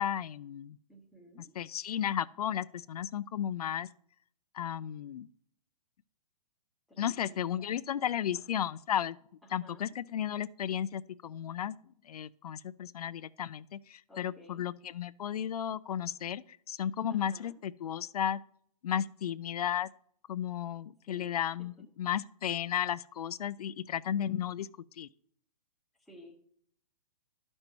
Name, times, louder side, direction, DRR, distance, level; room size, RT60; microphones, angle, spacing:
voice 1, 0.0-0.8 1.6-3.9 4.5-5.3 7.0-9.2 9.5-11.7 12.0-18.4 18.8-19.9 20.3-24.7 24.9-25.1, left 9 dB, 70° left, 14 dB, 0.4 m, -34 dB
voice 2, 0.9-1.5 6.9-8.7 9.4-9.9 14.1-14.6 17.1-17.5 21.1-21.4 26.0-26.5, left 1 dB, ahead, -3 dB, 0.7 m, -55 dB
12.0 x 5.4 x 4.5 m, 0.64 s
hypercardioid pair, 165°, 20 cm